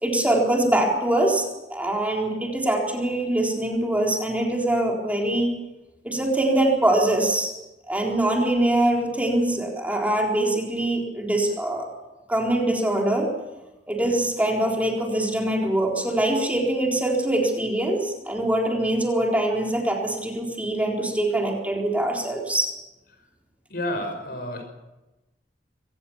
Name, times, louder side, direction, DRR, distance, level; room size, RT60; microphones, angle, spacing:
voice 1, 0.0-5.5 6.0-7.5 7.9-11.9 12.3-13.3 13.9-22.7, right 1 dB, 10° right, 0 dB, 4.0 m, -23 dB
voice 2, 23.7-24.6, left 1 dB, 60° left, 5 dB, 6.1 m, -30 dB
23.5 x 18.5 x 7.2 m, 1.0 s
head